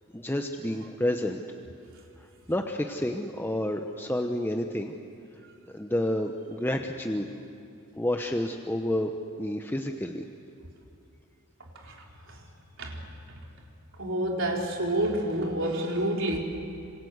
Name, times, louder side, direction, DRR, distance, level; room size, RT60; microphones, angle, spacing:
voice 1, 0.1-1.4 2.5-4.9 5.7-7.3 8.0-9.1 9.4-10.2, left 1 dB, 10° left, 4 dB, 0.9 m, -29 dB
voice 2, 14.0-16.4, right 1 dB, 65° right, 0 dB, 4.1 m, -28 dB
26.5 x 26.5 x 8.1 m, 2.5 s
head